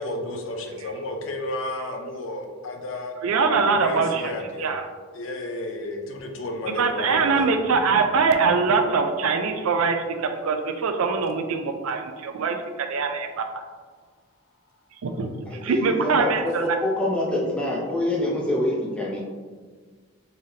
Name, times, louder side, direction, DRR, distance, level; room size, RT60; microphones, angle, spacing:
voice 1, 0.0-3.1 3.8-4.7 5.1-7.6, left 1 dB, 60° left, 3 dB, 0.5 m, -32 dB
voice 2, 3.2-4.3 4.6-4.8 6.8-13.4 15.0-15.3 15.6-16.6, right 4 dB, 80° right, 6 dB, 0.4 m, -23 dB
voice 3, 15.5-19.2, left 1 dB, 5° left, -4 dB, 0.6 m, -26 dB
3.9 x 3.2 x 2.7 m, 1.5 s
head